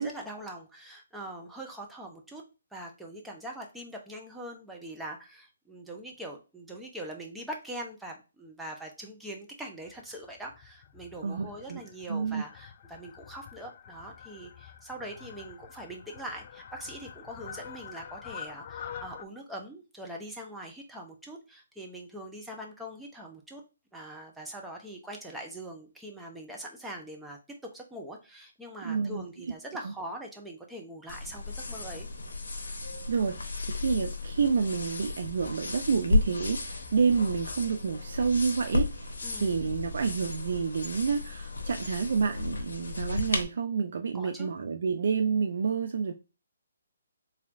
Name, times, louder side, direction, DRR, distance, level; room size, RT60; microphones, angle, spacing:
voice 1, 0.0-2.4 2.7-23.6 23.9-32.1 39.2-39.6 44.1-44.5, right 1 dB, 5° right, 0.9 m, -42 dB
Fowl, 9.8-19.2, left 8 dB, 40° left, 0.4 m, -46 dB
voice 2, 11.2-11.8 12.1-12.4 28.8-29.2 29.8-29.9 33.1-46.1, right 5 dB, 60° right, 0.4 m, -29 dB
sound 1, 31.1-43.4, left 3 dB, 70° left, 0.9 m, -34 dB
4.4 x 3.4 x 2.5 m
figure-of-eight pair, 135°, 0 cm